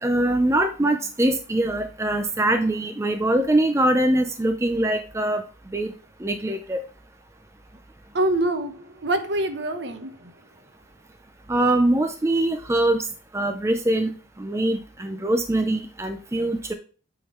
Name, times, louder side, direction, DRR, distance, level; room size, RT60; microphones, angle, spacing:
voice 1, 0.0-5.4 5.7-5.9 6.2-6.8 11.5-13.0 13.3-14.1 14.4-16.7, right 1 dB, 15° right, 0.4 m, -23 dB
voice 2, 8.1-10.3, right 1 dB, 60° right, 0.9 m, -25 dB
8.5 x 3.8 x 4.3 m
head